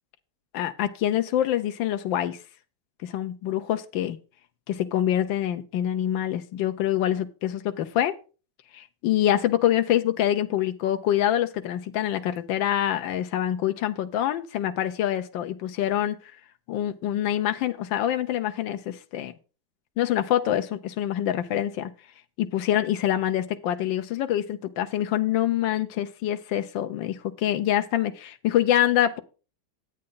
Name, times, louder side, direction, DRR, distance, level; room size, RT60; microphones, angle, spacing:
voice 1, 0.5-2.4 3.0-4.2 4.7-8.2 8.7-16.2 16.7-19.3 20.0-21.9 22.4-29.2, left 11 dB, 80° left, 8 dB, 1.5 m, -25 dB
11.0 x 8.7 x 3.9 m, 0.34 s
omnidirectional pair, 2.1 m